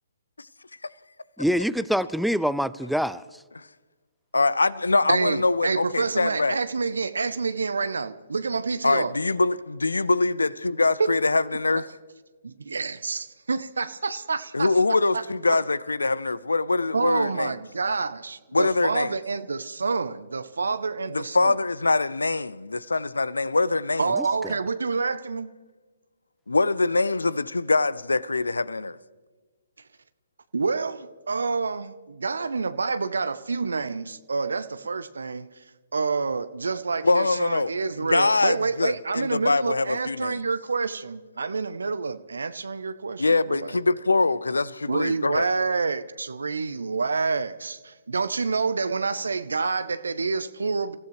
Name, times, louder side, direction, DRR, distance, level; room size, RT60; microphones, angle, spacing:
voice 1, 1.4-3.2 24.2-24.6, equal, ahead, 0.4 m, -25 dB
voice 2, 4.3-6.6 8.8-11.9 14.5-17.6 18.5-19.1 21.1-24.1 26.5-29.0 37.0-37.7 38.0-40.4 43.2-45.5, left 3 dB, 75° left, 0.6 m, -23 dB
voice 3, 5.1-9.1 11.0-11.1 12.4-14.7 15.1-15.2 16.9-21.6 24.0-25.5 30.5-35.5 35.9-43.8 44.9-51.0, right 4 dB, 70° right, 0.7 m, -28 dB
29.5 x 15.5 x 3.2 m
figure-of-eight pair, 130°, 0 cm